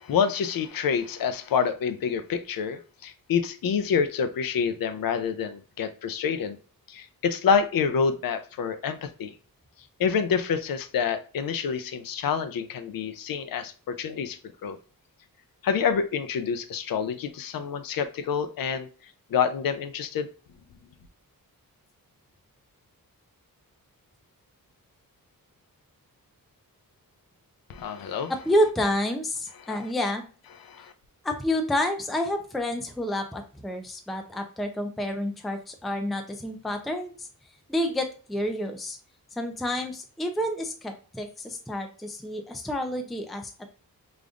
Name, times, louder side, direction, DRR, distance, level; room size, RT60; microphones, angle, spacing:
voice 1, 0.0-6.6 6.9-9.3 10.0-14.8 15.6-18.9 19.3-20.3 27.7-28.3 29.7-29.8 30.7-30.9, left 6 dB, 75° left, 10 dB, 0.5 m, -27 dB
voice 2, 28.3-30.2 31.2-37.3 37.7-39.0 39.4-43.5, left 1 dB, ahead, 5 dB, 0.4 m, -29 dB
5.0 x 2.5 x 2.4 m, 0.37 s
wide cardioid pair, 115°, 35 cm